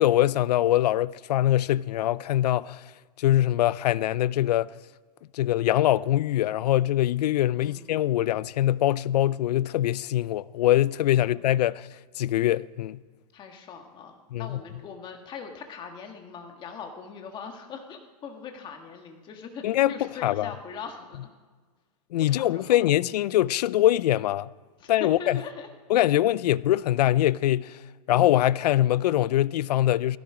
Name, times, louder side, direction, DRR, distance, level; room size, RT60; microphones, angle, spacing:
voice 1, 0.0-2.8 3.2-4.7 5.3-11.9 12.2-13.0 14.3-14.6 19.6-20.0 20.2-20.5 22.1-24.5 24.9-25.4 25.9-27.8 28.1-30.2, left 13 dB, 75° left, 0.5 m, -23 dB
voice 2, 13.3-21.2 22.3-22.7 24.8-25.7, left 6 dB, 25° left, 1.8 m, -41 dB
17.5 x 16.0 x 5.0 m
supercardioid pair, 155°, 21 cm